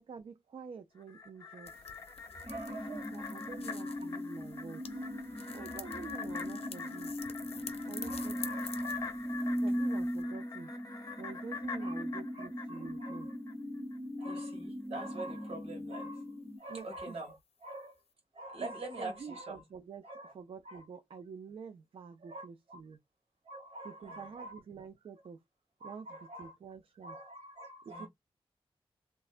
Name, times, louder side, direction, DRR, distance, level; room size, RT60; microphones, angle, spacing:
voice 1, 0.0-1.7 2.7-5.0 5.5-7.1 7.9-8.6 9.6-10.7 11.2-13.3 16.7-17.2 18.6-18.7 19.0-23.0 23.8-25.4 25.8-27.2 27.9-28.1, right 6 dB, 65° right, 0.4 m, -48 dB
sound 1, 1.0-13.5 13.9-14.0, left 5 dB, 35° left, 0.8 m, -45 dB
sound 2, 1.7-10.2, left 6 dB, 75° left, 0.5 m, -49 dB
sound 3, 2.4-16.6, equal, 5° left, 0.7 m, -39 dB
voice 2, 2.4-3.0 3.8-3.9 7.5-7.6 8.0-8.9 11.8-11.9 12.3-13.3 14.2-16.2 16.6-18.0 18.3-19.6 20.0-20.3 20.6-20.8 22.2-22.8 23.4-24.6 25.8-26.5 27.0-28.1, right 2 dB, 80° right, 1.7 m, -45 dB
3.2 x 2.1 x 2.4 m
wide cardioid pair, 160°, 10 cm